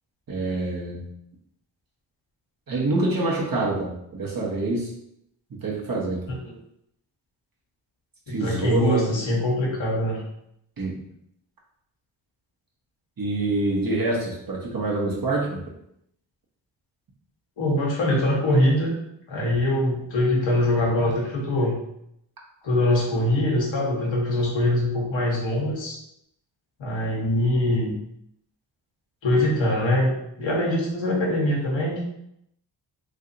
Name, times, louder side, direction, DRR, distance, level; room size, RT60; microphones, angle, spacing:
voice 1, 0.3-1.0 2.7-4.9 5.6-6.2 8.3-9.1 10.8-11.0 13.2-15.6, right 2 dB, 45° right, -3 dB, 1.1 m, -26 dB
voice 2, 8.3-10.2 17.6-18.9 19.3-21.8 22.6-26.0 26.8-27.9 29.2-32.0, left 1 dB, 70° left, -3 dB, 1.1 m, -23 dB
3.2 x 2.8 x 2.6 m, 0.76 s
supercardioid pair, 45°, 47 cm